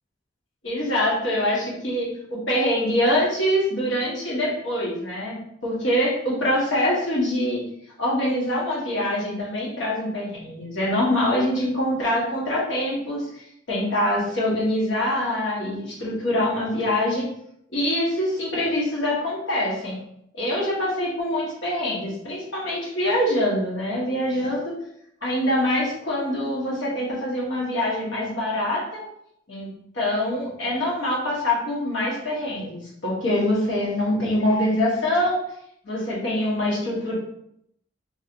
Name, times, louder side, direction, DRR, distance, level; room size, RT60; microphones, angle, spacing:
voice 1, 0.6-5.4 5.6-7.6 8.0-13.3 13.7-17.3 17.7-20.0 20.3-24.7 25.2-29.0 29.5-29.7 29.9-35.4 35.8-37.1, left 1 dB, 85° left, -5 dB, 1.2 m, -24 dB
2.9 x 2.5 x 2.9 m, 0.74 s
head